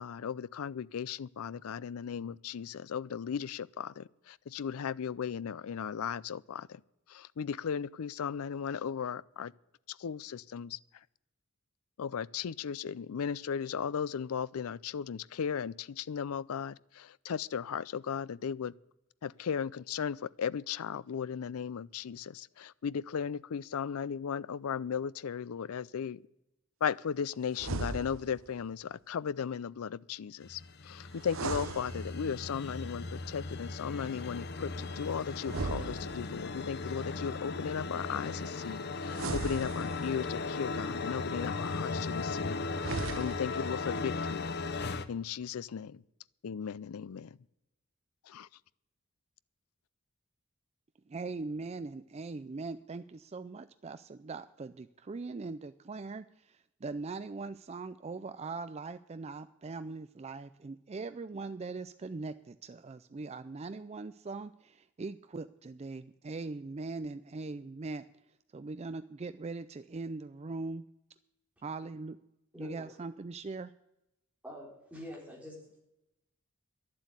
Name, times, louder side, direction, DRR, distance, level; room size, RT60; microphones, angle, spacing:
voice 1, 0.0-6.8 7.1-9.5 10.0-10.8 12.0-18.7 19.2-26.2 26.8-44.5 45.1-46.0 46.4-47.3 48.3-48.5, left 7 dB, 80° left, 0.4 m, -36 dB
sound 1, 27.5-28.5 31.2-32.5 35.4-36.6 39.1-40.3 42.7-43.7, right 3 dB, 65° right, 0.7 m, -38 dB
sound 2, 30.4-45.1, left 3 dB, 50° left, 0.8 m, -37 dB
voice 2, 51.1-68.0 68.5-70.8 71.6-72.2 72.6-73.7, right 3 dB, 30° right, 0.4 m, -41 dB
voice 3, 72.5-72.8 74.4-75.8, left 1 dB, 5° right, 3.7 m, -46 dB
11.5 x 7.6 x 9.7 m
head